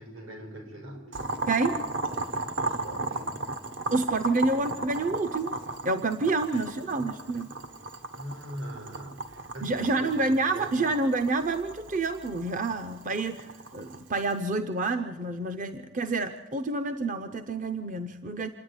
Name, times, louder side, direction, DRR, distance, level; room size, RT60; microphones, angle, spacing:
voice 1, 0.0-1.4 2.6-3.6 6.5-7.3 8.1-10.9, right 1 dB, 75° right, 3 dB, 5.4 m, -42 dB
Boiling, 1.1-14.4, right 2 dB, 60° right, 1.1 m, -36 dB
voice 2, 1.5-1.8 3.9-5.6 5.8-7.5 9.6-18.5, right 3 dB, 40° right, 8 dB, 0.6 m, -28 dB
27.0 x 10.0 x 9.7 m, 1.3 s
head